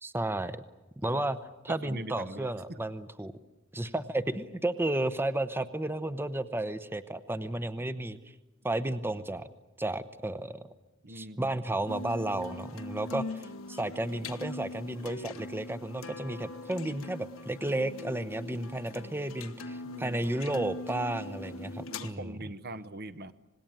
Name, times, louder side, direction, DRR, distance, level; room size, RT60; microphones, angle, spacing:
voice 1, 0.0-0.6 1.0-1.4 1.6-3.3 3.7-8.2 8.6-9.5 9.8-10.7 11.1-22.3, right 1 dB, 10° right, 12 dB, 0.8 m, -33 dB
voice 2, 1.7-2.8 11.0-11.6 19.8-20.2 21.9-23.3, right 1 dB, 50° right, 12 dB, 1.0 m, -42 dB
sound 1, 11.9-22.1, left 2 dB, 80° left, 1.5 m, -42 dB
26.5 x 20.0 x 8.9 m, 1.1 s
head